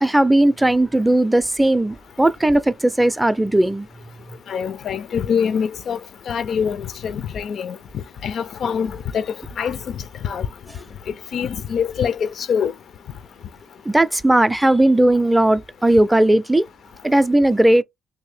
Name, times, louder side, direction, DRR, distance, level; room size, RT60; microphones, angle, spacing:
voice 1, 0.0-3.9 13.9-16.6 17.0-17.8, right 1 dB, 10° right, 0.4 m, -17 dB
voice 2, 4.5-6.0 6.3-7.8 8.2-9.2 9.6-9.8 10.2-10.5 11.3-12.7, left 7 dB, 65° left, 0.4 m, -24 dB
3.2 x 2.7 x 3.3 m
cardioid pair, 90°, 0 cm